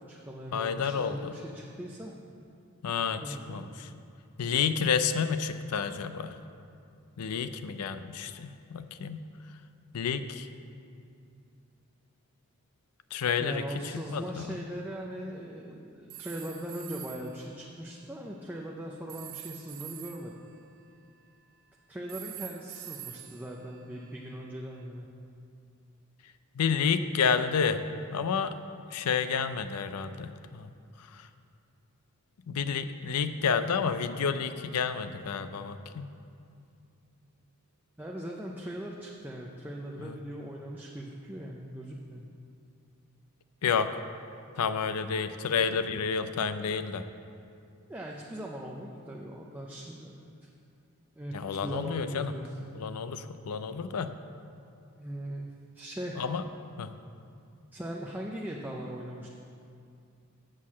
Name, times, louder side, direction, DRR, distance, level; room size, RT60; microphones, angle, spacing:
voice 1, 0.0-2.1 3.2-3.8 13.4-20.3 21.9-25.1 38.0-42.3 47.9-50.5 51.1-52.6 55.0-56.2 57.7-59.3, right 1 dB, 10° right, -2 dB, 0.5 m, -40 dB
voice 2, 0.5-1.3 2.8-3.2 3.5-3.9 4.4-6.3 7.2-9.2 9.9-10.5 13.1-13.6 14.1-14.6 26.6-27.8 28.1-28.5 28.9-30.7 32.5-36.1 40.0-40.1 43.6-43.9 44.6-47.0 51.3-52.3 52.7-54.1 56.2-56.4 56.8-56.9, left 6 dB, 85° left, 11 dB, 0.5 m, -30 dB
sound 1, 16.1-17.4 19.1-21.6 22.1-24.4, right 12 dB, 60° right, 0.6 m, -46 dB
7.5 x 6.4 x 7.3 m, 2.5 s
head